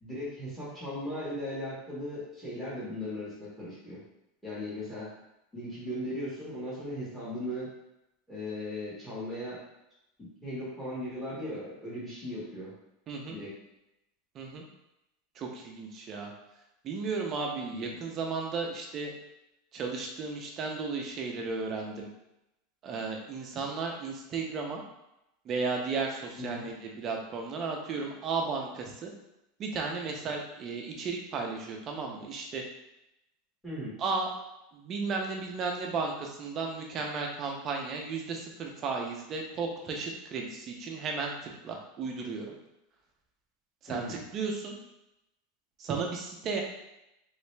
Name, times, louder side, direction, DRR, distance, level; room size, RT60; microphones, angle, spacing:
voice 1, 0.0-4.0 4.4-5.1 5.5-7.7 8.3-9.6 10.2-12.7 13.3-13.5 17.7-17.9 26.4-26.6 33.6-34.0 43.9-44.2, left 1 dB, ahead, -9 dB, 1.4 m, -37 dB
voice 2, 13.1-13.4 14.3-14.7 15.4-16.3 16.8-19.1 19.7-22.1 22.8-24.8 25.5-29.1 29.6-32.6 34.0-34.3 34.7-42.5 43.8-44.8 45.8-46.6, right 4 dB, 25° right, 1 dB, 0.5 m, -34 dB
3.1 x 2.8 x 3.2 m, 0.88 s
supercardioid pair, 170°, 0 cm